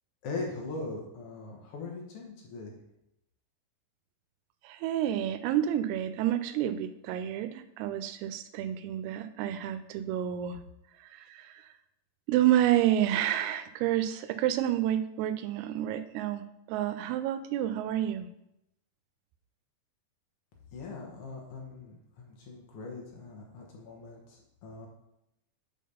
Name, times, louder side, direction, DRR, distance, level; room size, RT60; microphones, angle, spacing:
voice 1, 0.2-2.7 20.7-24.9, left 3 dB, 75° left, -1 dB, 1.3 m, -41 dB
voice 2, 4.6-10.6 11.1-11.5 12.3-16.4 16.7-18.3, right 11 dB, 80° right, 11 dB, 2.5 m, -29 dB
8.4 x 4.1 x 5.4 m, 0.83 s
omnidirectional pair, 4.7 m